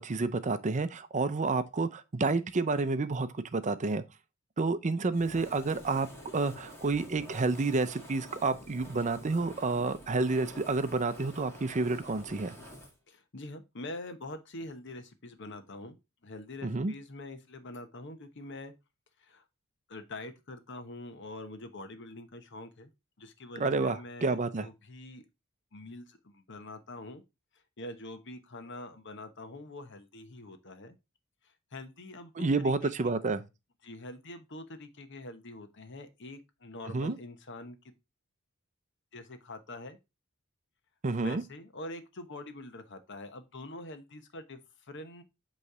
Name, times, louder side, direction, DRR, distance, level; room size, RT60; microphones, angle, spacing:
voice 1, 0.0-4.0 4.6-6.1 6.3-12.6 16.6-16.9 23.6-24.7 32.4-33.4 36.9-37.2 41.0-41.4, right 3 dB, 35° right, 0.5 m, -29 dB
Fire, 5.1-12.9, equal, 10° left, 1.7 m, -49 dB
voice 2, 13.1-16.0 16.2-18.7 19.2-19.4 19.9-22.9 23.2-25.2 25.7-27.2 27.8-31.0 31.7-33.1 33.8-37.8 39.1-40.0 41.2-44.6 44.9-45.2, left 2 dB, 60° left, 1.0 m, -45 dB
8.1 x 3.2 x 4.9 m
head